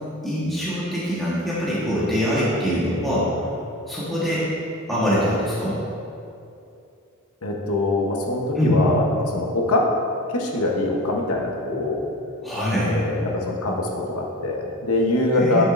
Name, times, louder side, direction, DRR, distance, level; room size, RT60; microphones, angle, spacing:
voice 1, 0.2-3.5 3.9-4.5 4.9-5.8 8.6-8.8 12.4-12.9 15.3-15.6, equal, ahead, -10 dB, 1.3 m, -23 dB
voice 2, 7.4-9.9 10.3-12.0 12.9-15.6, left 2 dB, 75° left, 0 dB, 1.0 m, -23 dB
9.2 x 6.3 x 2.6 m, 2.6 s
head